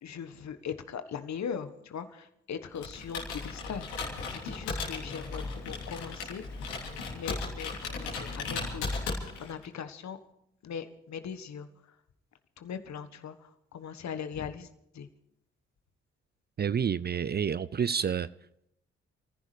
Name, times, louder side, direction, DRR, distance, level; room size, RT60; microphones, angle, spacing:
voice 1, 0.0-6.7 7.1-8.9 9.4-10.2 10.6-12.0 12.6-14.7 14.9-15.1, left 7 dB, 55° left, 1.4 m, -40 dB
Computer keyboard, 2.8-9.6, left 3 dB, 85° left, 3.3 m, -36 dB
voice 2, 16.6-18.3, right 7 dB, 30° right, 0.5 m, -29 dB
28.5 x 15.0 x 3.3 m
hypercardioid pair, 40°, 33 cm